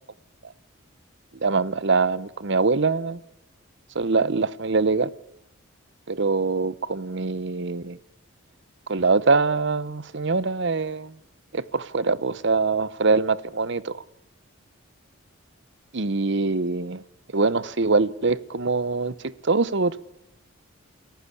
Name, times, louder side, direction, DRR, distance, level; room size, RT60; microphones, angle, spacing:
voice 1, 1.4-3.2 3.9-5.1 6.1-8.0 8.9-11.2 11.5-14.0 15.9-17.0 17.3-20.0, right 4 dB, 60° right, 0.9 m, -23 dB
29.0 x 15.0 x 8.4 m
head